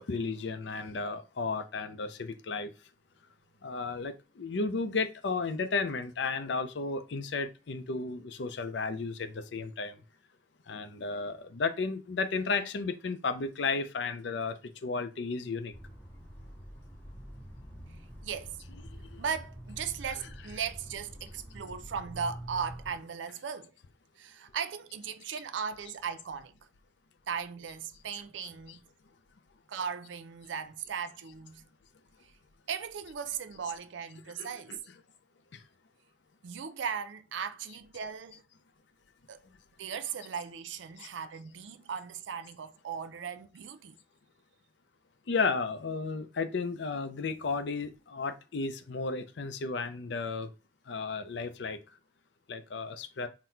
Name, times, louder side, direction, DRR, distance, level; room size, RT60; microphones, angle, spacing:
voice 1, 0.0-2.7 3.6-10.0 10.7-15.7 20.1-20.6 28.4-28.8 34.4-34.8 45.3-50.5 50.9-51.8 52.5-53.3, left 4 dB, 75° left, 0.5 m, -33 dB
sound 1, 15.7-23.0, right 1 dB, 10° left, 0.9 m, -46 dB
voice 2, 18.2-18.6 18.9-23.7 24.2-26.5 27.3-28.8 29.7-31.6 32.2-32.3 32.7-34.8 36.4-38.4 39.3-39.4 39.8-44.0, right 7 dB, 85° right, 0.4 m, -37 dB
4.0 x 2.1 x 4.3 m
head